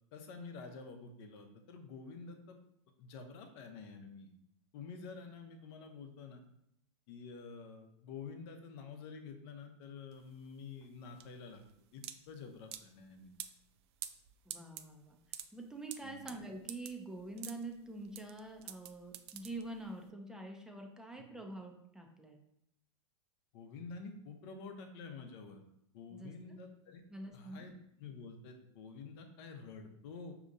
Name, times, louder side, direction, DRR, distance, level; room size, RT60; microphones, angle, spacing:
voice 1, 0.1-2.6 3.0-4.3 4.7-6.4 7.1-11.6 11.9-12.0 12.3-13.3 16.0-16.3 23.5-25.6 25.9-27.0 27.3-30.3, left 4 dB, 55° left, 5 dB, 0.8 m, -49 dB
sound 1, 10.1-20.0, right 11 dB, 65° right, 0.4 m, -49 dB
voice 2, 14.5-15.2 15.5-22.4 26.1-26.6 27.1-27.7, right 2 dB, 5° right, 2 dB, 0.6 m, -46 dB
5.1 x 2.9 x 2.5 m, 0.76 s
hypercardioid pair, 110°, 15 cm